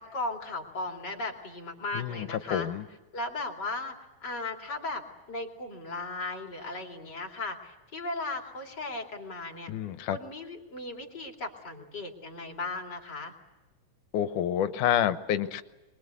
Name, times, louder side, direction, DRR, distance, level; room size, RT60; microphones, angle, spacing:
voice 1, 0.0-2.7 3.1-3.9 4.2-5.0 5.3-9.7 10.1-13.3, left 2 dB, 35° left, 2 dB, 3.1 m, -36 dB
voice 2, 1.9-2.8 9.7-10.2 14.1-15.6, left 10 dB, 80° left, 11 dB, 2.5 m, -28 dB
24.5 x 22.0 x 8.2 m, 1.2 s
omnidirectional pair, 3.6 m